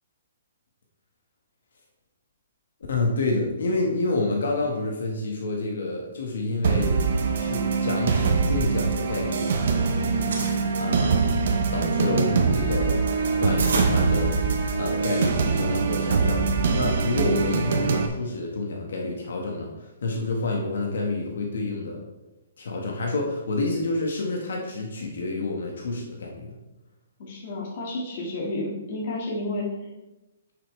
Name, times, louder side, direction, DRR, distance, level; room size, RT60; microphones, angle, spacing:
voice 1, 2.9-7.0 7.4-9.5 10.8-11.4 11.7-14.3 14.7-22.0 22.6-26.5, left 2 dB, 65° left, 0 dB, 1.6 m, -28 dB
sound 1, 6.6-18.1, right 5 dB, 45° right, 0.9 m, -23 dB
sound 2, 8.8-9.7 10.0-10.6 11.3-14.8, right 3 dB, 70° right, 2.0 m, -33 dB
voice 2, 27.2-29.9, left 2 dB, 35° left, -3 dB, 1.9 m, -31 dB
8.9 x 6.7 x 3.3 m, 1.0 s
hypercardioid pair, 180°, 0 cm